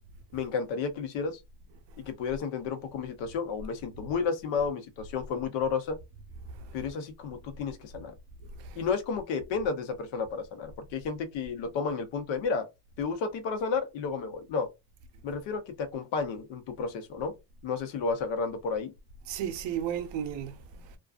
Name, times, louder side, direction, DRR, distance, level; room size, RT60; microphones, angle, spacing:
voice 1, 0.3-1.4 2.0-6.0 6.7-8.1 8.8-12.7 13.0-14.7 15.2-17.3 17.6-18.9, left 5 dB, 80° left, 0.8 m, -32 dB
voice 2, 8.6-8.9 19.3-21.0, right 9 dB, 75° right, 0.6 m, -34 dB
2.5 x 2.3 x 2.3 m
cardioid pair, 125°, 44 cm